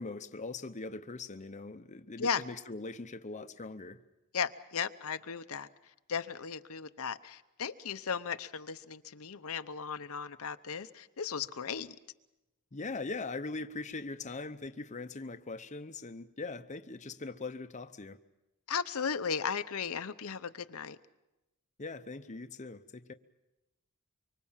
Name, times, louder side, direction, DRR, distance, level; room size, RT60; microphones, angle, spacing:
voice 1, 0.0-4.0 12.7-18.2 21.8-23.1, left 3 dB, 35° left, 0.8 m, -41 dB
voice 2, 4.3-5.7 6.1-11.9 18.7-21.0, left 6 dB, 75° left, 0.8 m, -36 dB
24.5 x 24.5 x 7.3 m
head